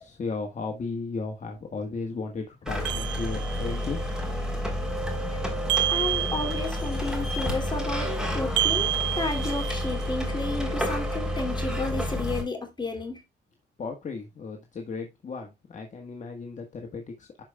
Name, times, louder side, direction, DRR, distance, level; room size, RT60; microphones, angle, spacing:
voice 1, 0.0-4.0 13.8-17.4, left 4 dB, 40° left, 1.4 m, -35 dB
sound 1, 2.7-12.4, equal, 5° right, 3.3 m, -30 dB
sound 2, 2.8-3.9 5.7-7.0 8.6-10.1, right 13 dB, 65° right, 0.4 m, -29 dB
voice 2, 5.9-8.9 9.2-13.2, left 3 dB, 20° left, 2.7 m, -32 dB
12.0 x 4.9 x 2.3 m
cardioid pair, 90°, 20 cm